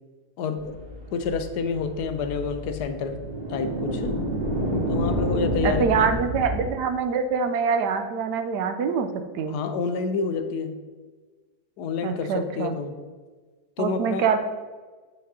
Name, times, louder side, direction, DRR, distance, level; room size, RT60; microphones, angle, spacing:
voice 1, 0.4-0.8 1.1-3.2 3.5-4.2 4.9-6.1 9.5-10.8 11.8-13.0 13.8-14.3, left 5 dB, 80° left, 9 dB, 1.2 m, -28 dB
sound 1, 0.6-6.7, equal, 25° right, 1.9 m, -29 dB
voice 2, 5.6-9.1 9.3-9.6 12.0-12.8 13.8-14.4, right 6 dB, 85° right, 8 dB, 1.2 m, -24 dB
8.4 x 7.5 x 2.7 m, 1.4 s
omnidirectional pair, 1.7 m